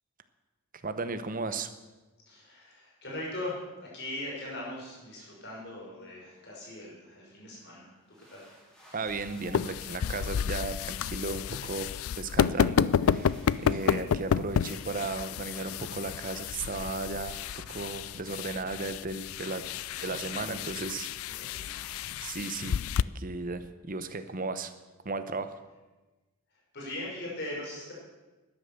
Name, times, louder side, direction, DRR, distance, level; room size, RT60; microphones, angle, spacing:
voice 1, 0.8-1.7 8.9-11.9 12.2-17.4 17.7-19.6 20.0-21.4 22.2-22.8 23.1-24.7 25.0-25.6, right 3 dB, 40° right, 11 dB, 0.9 m, -35 dB
voice 2, 2.3-8.5 13.8-14.1 20.0-20.6 21.3-21.9 26.7-27.9, left 1 dB, 50° left, -4 dB, 5.5 m, -40 dB
sound 1, 8.0-9.9 10.4-10.5 10.7-11.8 12.9-14.6 15.2-16.4 16.9-18.5 19.5-20.6 21.5-22.6, equal, 5° left, 3.9 m, -57 dB
sound 2, 9.1-23.0, left 7 dB, 70° left, 0.3 m, -31 dB
12.5 x 10.0 x 6.8 m, 1.2 s
head